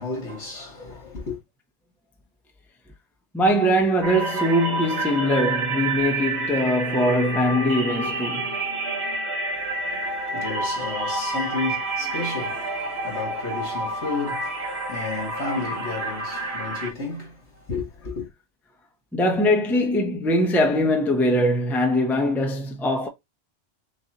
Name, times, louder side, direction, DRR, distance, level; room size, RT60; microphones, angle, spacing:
voice 1, 0.0-1.4 9.6-18.3, left 3 dB, 75° left, 2.5 m, -32 dB
voice 2, 3.3-8.4 19.1-23.1, equal, ahead, 0.6 m, -22 dB
sound 1, 4.0-16.9, right 2 dB, 65° right, 1.4 m, -29 dB
6.1 x 2.7 x 2.8 m
omnidirectional pair, 1.2 m